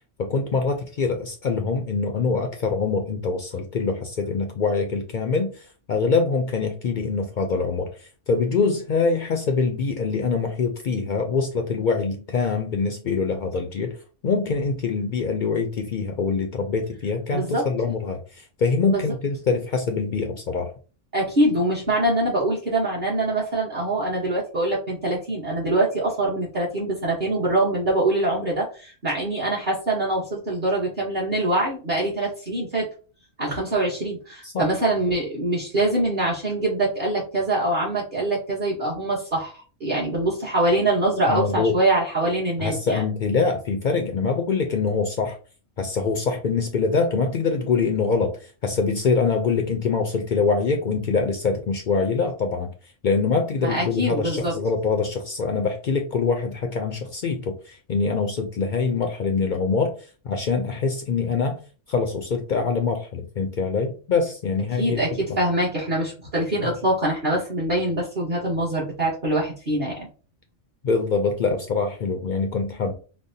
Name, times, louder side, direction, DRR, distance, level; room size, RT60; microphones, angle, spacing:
voice 1, 0.2-14.0 14.2-20.7 34.4-34.7 41.3-41.8 42.6-45.4 45.8-52.7 53.0-61.6 61.9-65.0 65.3-65.4 66.6-66.7 70.8-72.9, left 4 dB, 60° left, 4 dB, 0.5 m, -24 dB
voice 2, 17.3-17.6 18.9-19.1 21.1-32.9 33.4-39.5 39.8-43.0 53.6-54.5 64.8-70.1, right 1 dB, 45° right, -6 dB, 1.1 m, -24 dB
5.2 x 2.0 x 2.6 m, 0.37 s
omnidirectional pair, 1.3 m